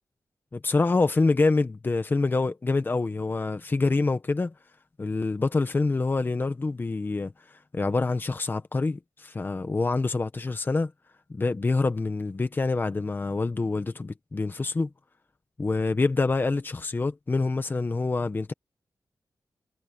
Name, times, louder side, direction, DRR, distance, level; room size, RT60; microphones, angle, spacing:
voice 1, 0.5-4.5 5.0-7.3 7.7-10.9 11.3-14.9 15.6-18.5, left 3 dB, 30° left, 1.3 m, -26 dB
wide cardioid pair, 100°, 7 cm